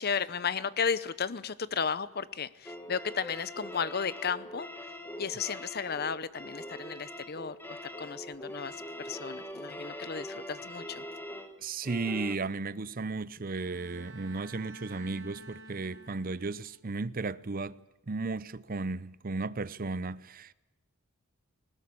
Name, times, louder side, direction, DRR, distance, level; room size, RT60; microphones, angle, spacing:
voice 1, 0.0-4.7 5.2-11.0, left 6 dB, 45° left, 0.8 m, -34 dB
sound 1, 2.6-12.4, left 1 dB, 10° left, 1.5 m, -43 dB
voice 2, 11.6-17.8 18.1-20.5, right 3 dB, 40° right, 0.6 m, -35 dB
Bowed string instrument, 13.5-16.7, right 2 dB, 65° right, 4.1 m, -50 dB
20.0 x 19.5 x 8.6 m
head